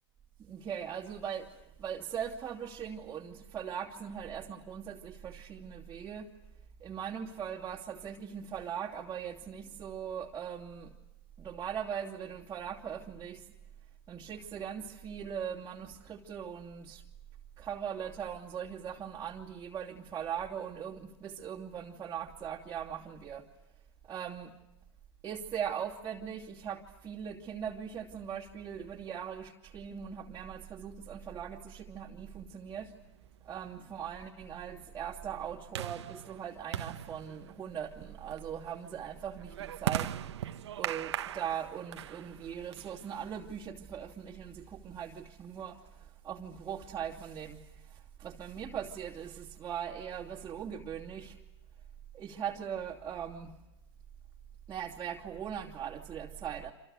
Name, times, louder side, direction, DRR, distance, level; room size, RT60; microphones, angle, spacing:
voice 1, 0.4-6.3 6.8-10.9 11.4-13.5 14.1-17.0 17.6-23.5 24.0-24.5 25.2-32.9 33.4-40.1 40.8-51.4 52.1-53.5 54.7-56.7, right 8 dB, 20° right, -4 dB, 2.8 m, -40 dB
sound 1, 33.0-43.4, right 10 dB, 85° right, 1.4 m, -40 dB
29.0 x 27.5 x 6.7 m, 0.94 s
hypercardioid pair, 120°, 14 cm